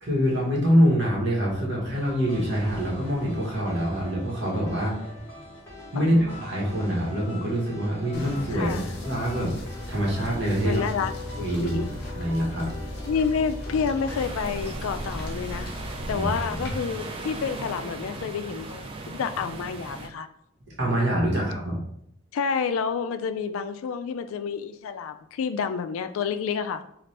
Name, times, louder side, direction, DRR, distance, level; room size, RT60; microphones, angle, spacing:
voice 1, 0.0-4.9 5.9-8.8 9.0-9.6 9.9-10.8 11.4-11.8 12.1-12.9 16.1-16.3 16.6-16.7 20.8-21.8, equal, 55° right, -3 dB, 1.2 m, -25 dB
sound 1, 1.9-14.2, left 1 dB, 10° left, 1.3 m, -42 dB
voice 2, 6.0-6.4 8.5-8.9 10.6-11.9 13.1-15.7 16.1-20.3 22.3-26.8, left 6 dB, 75° left, 10 dB, 0.3 m, -29 dB
sound 2, 8.1-16.8, left 1 dB, 50° left, 0.8 m, -37 dB
sound 3, 14.1-20.1, right 2 dB, 25° right, 0.3 m, -38 dB
4.2 x 2.5 x 3.2 m, 0.72 s
head